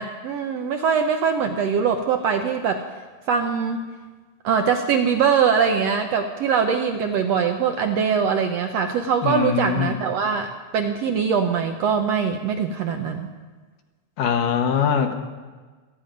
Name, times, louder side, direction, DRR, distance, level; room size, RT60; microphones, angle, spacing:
voice 1, 0.0-2.8 3.3-3.8 4.4-13.3, right 6 dB, 75° right, 5 dB, 1.5 m, -22 dB
voice 2, 9.2-10.0 14.2-15.1, left 7 dB, 85° left, 6 dB, 2.6 m, -22 dB
27.0 x 9.1 x 5.2 m, 1.4 s
omnidirectional pair, 3.7 m